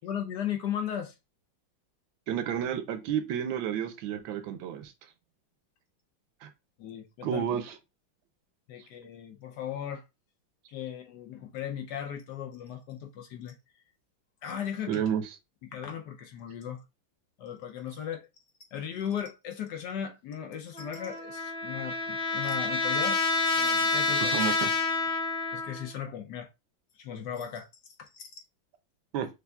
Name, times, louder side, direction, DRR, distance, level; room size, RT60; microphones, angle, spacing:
voice 1, 0.0-1.1 6.8-7.4 8.7-10.0 10.7-13.6 14.4-15.0 15.7-16.8 17.4-18.3 18.7-23.2 23.6-24.3 25.5-26.5 26.9-28.4, left 9 dB, 70° left, 1.1 m, -37 dB
voice 2, 2.3-4.9 6.4-6.5 7.2-7.8 14.9-15.3 24.1-24.7 29.1-29.3, right 9 dB, 80° right, 1.4 m, -31 dB
Trumpet, 20.7-25.9, left 3 dB, 40° left, 1.5 m, -28 dB
6.7 x 2.6 x 2.3 m
omnidirectional pair, 2.2 m